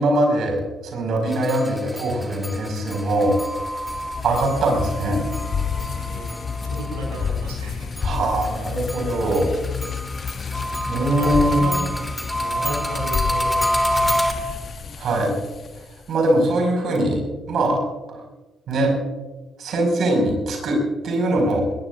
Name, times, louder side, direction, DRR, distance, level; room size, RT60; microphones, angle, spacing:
voice 1, 0.0-3.4 4.2-5.2 8.0-9.5 10.9-11.6 15.0-15.3 16.1-17.2 17.5-17.8 18.1-18.2 18.7-18.9 19.6-20.8 21.0-21.6, right 1 dB, 60° right, 2 dB, 5.3 m, -21 dB
sound 1, 1.3-7.5 7.9-14.3, equal, 10° left, 3.0 m, -27 dB
sound 2, 2.8-16.2, left 6 dB, 50° left, 0.9 m, -30 dB
voice 2, 6.0-7.9 10.8-12.1 12.3-14.6, right 2 dB, 80° right, -1 dB, 4.4 m, -34 dB
21.0 x 21.0 x 2.5 m, 1.2 s
figure-of-eight pair, 40°, 0 cm